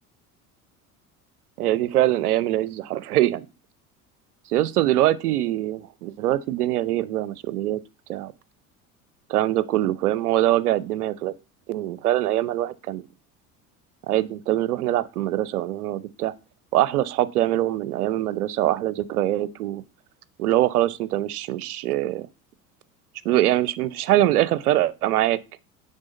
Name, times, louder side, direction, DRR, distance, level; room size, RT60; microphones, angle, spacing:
voice 1, 1.6-3.5 4.5-7.8 8.1-8.3 9.3-11.3 11.7-13.0 14.1-16.3 16.7-19.8 20.4-22.3 23.2-25.4, right 14 dB, 70° right, 0.7 m, -23 dB
9.8 x 3.9 x 4.0 m
figure-of-eight pair, 65°, 46 cm